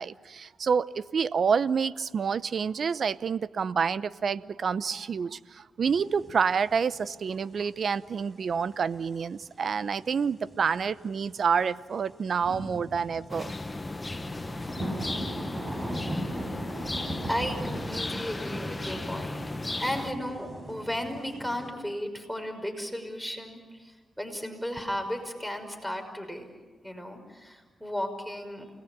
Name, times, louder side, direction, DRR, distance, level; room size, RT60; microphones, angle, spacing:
voice 1, 0.0-13.5, right 6 dB, 60° right, 16 dB, 0.7 m, -28 dB
sound 1, 5.8-9.6 10.0-11.8 12.1-21.7, right 1 dB, 30° right, 5.2 m, -39 dB
sound 2, 13.3-20.1, left 2 dB, 25° left, 1.1 m, -36 dB
voice 2, 17.3-26.6 26.8-28.7, equal, ahead, 6 dB, 5.7 m, -35 dB
29.5 x 20.0 x 8.7 m, 1.4 s
cardioid pair, 65°, 0 cm